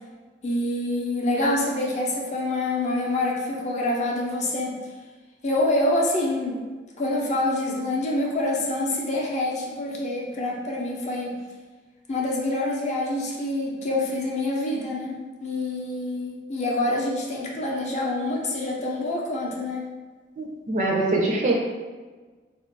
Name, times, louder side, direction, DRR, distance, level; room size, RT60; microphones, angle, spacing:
voice 1, 0.4-4.8 5.4-6.6 7.0-11.4 12.1-19.8, left 1 dB, 40° left, -2 dB, 0.5 m, -26 dB
voice 2, 20.4-21.5, right 2 dB, 45° right, -1 dB, 0.5 m, -23 dB
3.5 x 2.4 x 2.5 m, 1.4 s
head